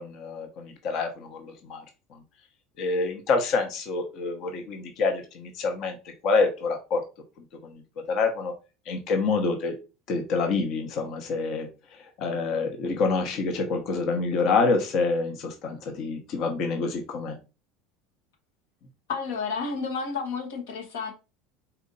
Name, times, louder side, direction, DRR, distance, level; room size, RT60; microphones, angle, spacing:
voice 1, 0.0-1.8 2.8-6.0 6.2-7.0 7.6-7.8 8.1-8.5 8.9-9.7 10.1-11.7 12.2-17.4, left 4 dB, 55° left, 0.9 m, -27 dB
voice 2, 19.1-21.1, left 5 dB, 90° left, 1.2 m, -31 dB
4.2 x 2.6 x 3.8 m
supercardioid pair, 120°, 0 cm